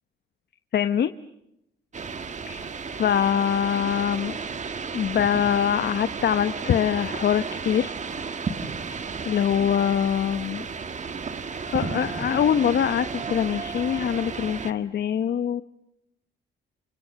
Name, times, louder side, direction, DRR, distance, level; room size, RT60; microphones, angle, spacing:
voice 1, 0.7-1.1 2.5-2.6 2.9-4.4 4.9-7.9 9.3-10.7 11.6-15.6, left 9 dB, 55° left, 11 dB, 1.1 m, -24 dB
sound 1, 1.9-14.7, right 5 dB, 35° right, 1.7 m, -33 dB
29.5 x 25.5 x 7.7 m, 0.82 s
cardioid pair, 90°, 20 cm